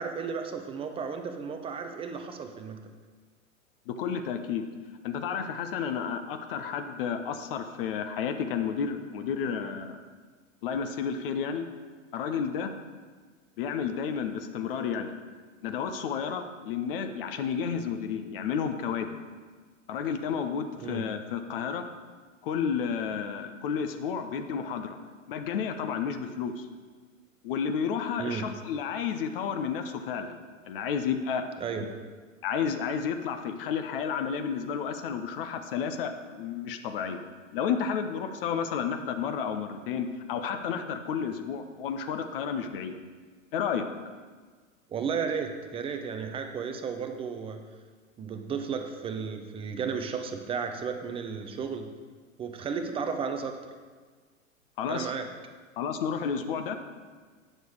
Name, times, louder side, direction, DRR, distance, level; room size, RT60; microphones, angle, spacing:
voice 1, 0.0-2.8 20.8-21.0 28.2-28.5 31.6-31.8 44.9-47.6 48.2-51.9 52.4-53.6 54.9-55.3, right 6 dB, 15° right, 6 dB, 0.6 m, -33 dB
voice 2, 3.9-4.7 5.0-10.0 10.6-11.6 12.1-12.7 13.6-15.1 15.6-19.1 19.9-21.9 22.4-25.0 25.3-26.7 27.4-30.4 30.7-31.4 32.4-37.2 37.5-42.9 43.5-43.9 54.8-55.1 55.8-56.7, left 7 dB, 45° left, 7 dB, 0.7 m, -31 dB
9.4 x 6.6 x 4.7 m, 1.5 s
figure-of-eight pair, 95°, 40 cm